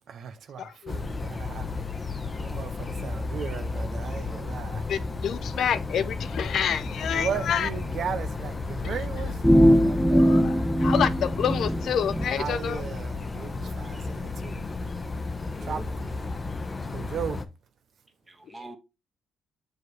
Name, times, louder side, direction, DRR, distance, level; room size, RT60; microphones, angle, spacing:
voice 1, 0.1-1.7 2.4-4.8 7.1-10.3 12.4-14.6 15.6-16.1 16.8-17.4, right 7 dB, 60° right, 0.6 m, -36 dB
voice 2, 0.6-0.9 4.9-7.7 8.8-9.0 10.1-12.8, left 8 dB, 65° left, 0.6 m, -28 dB
sound 1, 0.9-17.5, left 3 dB, 30° left, 0.8 m, -33 dB
sound 2, 9.4-12.3, equal, ahead, 0.3 m, -21 dB
voice 3, 15.5-16.2 18.3-18.8, right 2 dB, 15° right, 1.3 m, -44 dB
6.3 x 5.0 x 3.1 m
cardioid pair, 90°, 0 cm